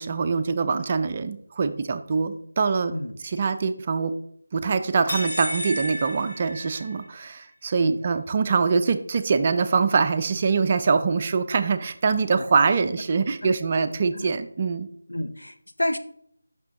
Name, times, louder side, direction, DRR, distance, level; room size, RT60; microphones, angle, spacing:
voice 1, 0.0-3.0 3.2-4.1 4.5-14.9, right 5 dB, 30° right, 10 dB, 0.3 m, -24 dB
voice 2, 2.9-3.3 7.8-8.0 12.3-12.4 13.4-13.5 14.1-14.3 15.1-16.0, left 1 dB, 80° left, 8 dB, 0.7 m, -30 dB
sound 1, 5.1-7.2, left 1 dB, 40° left, 2.5 m, -32 dB
5.9 x 5.9 x 2.9 m, 0.67 s
figure-of-eight pair, 165°, 0 cm